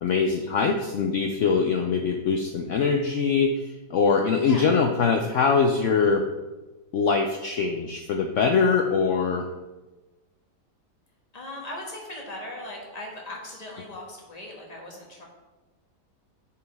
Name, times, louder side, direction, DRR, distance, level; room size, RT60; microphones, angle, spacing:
voice 1, 0.0-6.2 6.9-9.5, left 5 dB, 80° left, 4 dB, 0.6 m, -23 dB
voice 2, 11.3-15.3, left 1 dB, 25° left, -2 dB, 1.3 m, -38 dB
8.0 x 5.0 x 3.4 m, 1.2 s
omnidirectional pair, 1.8 m